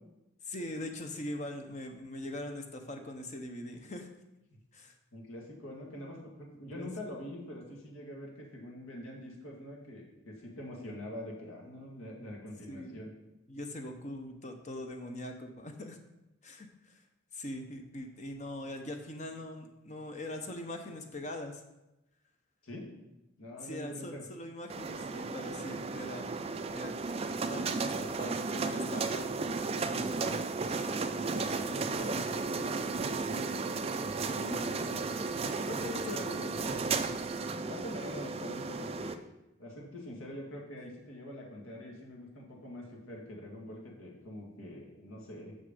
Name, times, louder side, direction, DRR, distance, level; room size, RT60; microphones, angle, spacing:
voice 1, 0.4-4.1 4.7-4.9 6.7-6.9 12.7-13.0 13.5-16.0 16.4-17.0 17.3-21.6 23.6-26.3 26.7-29.4 29.7-30.4 30.9-31.0 35.6-36.9, left 1 dB, 35° left, 5 dB, 0.7 m, -42 dB
voice 2, 5.1-13.1 22.6-22.9 23.4-24.2 31.3-35.0 37.6-39.2 39.6-45.6, left 1 dB, 75° left, -1 dB, 2.1 m, -45 dB
sound 1, 24.7-39.1, right 4 dB, 30° right, 0.3 m, -34 dB
6.7 x 6.4 x 5.3 m, 0.94 s
head